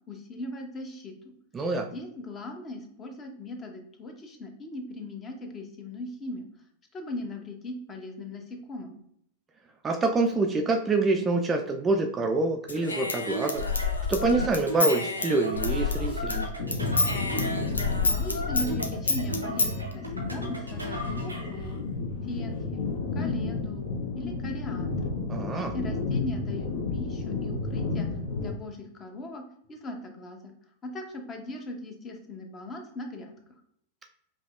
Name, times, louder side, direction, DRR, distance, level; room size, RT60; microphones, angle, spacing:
voice 1, 0.1-1.3 1.9-6.5 6.9-9.0 17.8-21.8 22.3-23.8 24.1-25.0 25.6-28.1 28.4-30.5 30.8-33.3, left 1 dB, 25° left, 4 dB, 0.8 m, -39 dB
voice 2, 1.5-1.9 9.8-13.6 14.1-16.5 25.3-25.7, right 3 dB, 20° right, 3 dB, 0.4 m, -26 dB
Human voice / Scissors, 12.7-16.4 16.7-19.7, left 3 dB, 75° left, 0.4 m, -28 dB
sound 1, 13.3-21.6, right 2 dB, 85° right, 0.7 m, -38 dB
sound 2, 16.6-28.5, left 3 dB, 55° left, 0.8 m, -32 dB
5.1 x 2.7 x 2.4 m, 0.71 s
figure-of-eight pair, 90°, 0 cm